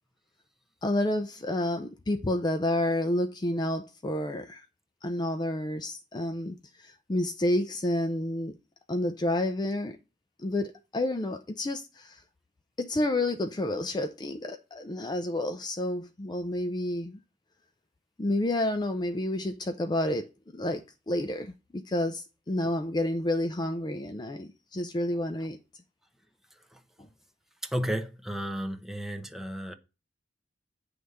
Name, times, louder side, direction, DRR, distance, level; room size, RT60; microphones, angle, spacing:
voice 1, 0.8-4.7 5.0-8.5 8.9-10.0 10.4-12.2 12.8-17.2 18.2-25.6, left 1 dB, 25° left, 0.4 m, -30 dB
voice 2, 27.7-29.7, equal, ahead, 0.8 m, -33 dB
9.4 x 3.4 x 6.5 m
head